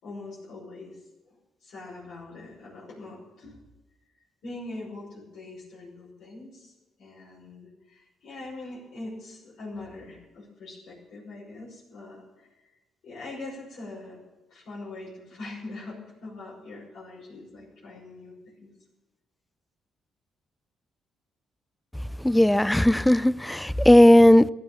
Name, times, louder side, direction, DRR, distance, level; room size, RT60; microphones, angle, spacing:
voice 1, 0.0-1.0 1.3-1.4 1.6-3.6 4.4-6.7 7.0-12.5 13.0-14.2 14.5-18.7, left 2 dB, 70° left, 6.1 m, -42 dB
voice 2, 22.2-24.5, left 1 dB, 5° left, 0.4 m, -17 dB
15.0 x 11.0 x 7.2 m
cardioid pair, 90°, 0 cm